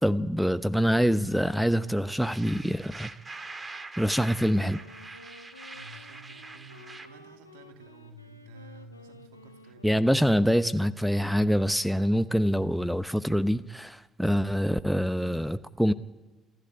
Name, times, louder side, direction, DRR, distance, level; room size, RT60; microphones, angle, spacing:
voice 1, 0.0-3.1 4.0-4.8 9.8-15.9, equal, ahead, 15 dB, 0.9 m, -25 dB
sound 1, 2.2-7.1, right 3 dB, 25° right, 2.0 m, -43 dB
Wind instrument woodwind instrument, 4.3-10.7, left 3 dB, 90° left, 1.1 m, -52 dB
voice 2, 5.7-10.0, right 2 dB, 65° right, 6 dB, 2.3 m, -51 dB
28.0 x 13.5 x 9.9 m, 1.2 s
figure-of-eight pair, 50°, 0 cm